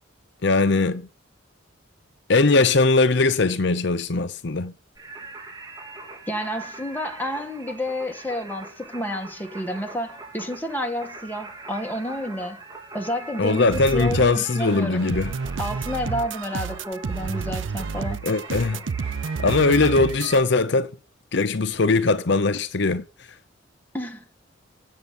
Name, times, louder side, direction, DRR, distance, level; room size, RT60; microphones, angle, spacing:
voice 1, 0.4-1.1 2.3-4.7 13.4-15.3 18.2-18.8 19.4-20.9 21.3-23.0, left 3 dB, 60° left, 0.7 m, -20 dB
Singing, 5.0-20.4, right 3 dB, 20° right, 3.7 m, -41 dB
voice 2, 6.3-12.6 12.9-15.1 15.6-18.2 23.9-24.2, left 1 dB, 10° left, 1.8 m, -30 dB
sound 1, 13.7-14.4 14.6-20.4, right 5 dB, 70° right, 0.5 m, -30 dB
8.0 x 7.8 x 7.1 m
head